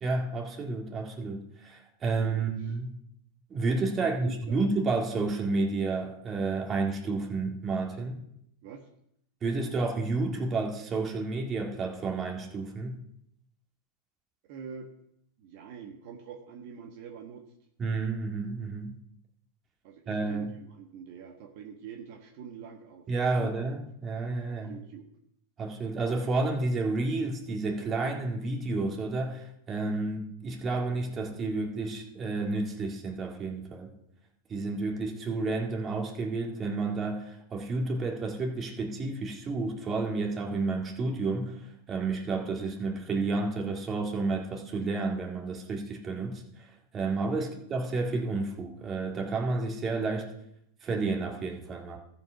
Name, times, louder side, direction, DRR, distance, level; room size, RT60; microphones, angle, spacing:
voice 1, 0.0-3.0 3.5-8.2 9.4-13.0 17.8-18.9 20.1-20.5 23.1-24.7 25.6-33.9 34.5-41.6 41.9-46.4 46.9-50.3 50.8-52.0, right 3 dB, 25° right, 2 dB, 1.9 m, -31 dB
voice 2, 2.3-2.7 4.0-4.6 8.6-8.9 14.5-14.9 15.4-17.4 19.8-23.1 23.4-23.5 24.5-25.1 47.4-47.5, right 7 dB, 55° right, 3 dB, 1.4 m, -45 dB
14.0 x 5.3 x 5.7 m, 0.76 s
supercardioid pair, 130°, 0 cm